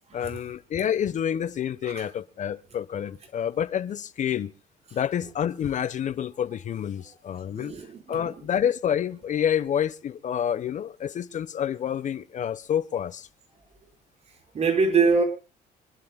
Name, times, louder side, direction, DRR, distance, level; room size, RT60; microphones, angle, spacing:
voice 1, 0.1-4.5 4.9-7.7 8.1-13.3, left 9 dB, 45° left, 1.0 m, -28 dB
voice 2, 7.5-8.3 14.5-15.2, right 4 dB, 40° right, 4.5 m, -24 dB
26.5 x 11.5 x 2.2 m
cardioid pair, 110°, 17 cm